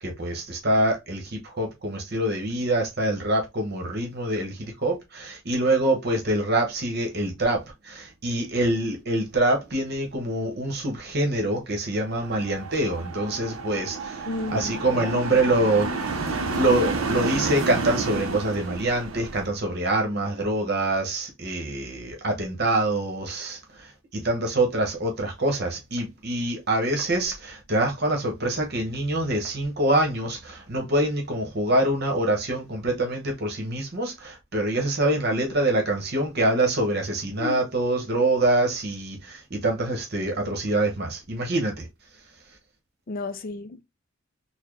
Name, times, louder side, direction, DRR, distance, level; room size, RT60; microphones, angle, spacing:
voice 1, 0.0-41.9, right 1 dB, 50° right, 1.0 m, -25 dB
sound 1, 12.1-19.5, right 4 dB, 90° right, 0.6 m, -30 dB
voice 2, 14.3-15.2 37.4-37.6 43.1-43.8, left 3 dB, 45° left, 0.4 m, -32 dB
4.1 x 2.1 x 3.1 m
head